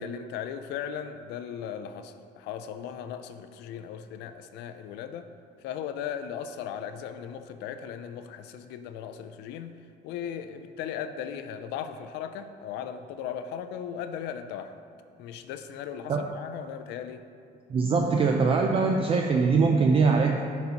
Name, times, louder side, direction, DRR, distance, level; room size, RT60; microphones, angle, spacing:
voice 1, 0.0-5.3 5.6-9.7 10.0-14.8 15.2-17.2, left 8 dB, 90° left, 9 dB, 0.4 m, -37 dB
voice 2, 17.7-20.4, right 4 dB, 35° right, 2 dB, 0.4 m, -22 dB
10.5 x 4.0 x 2.9 m, 2.3 s
cardioid pair, 110°, 17 cm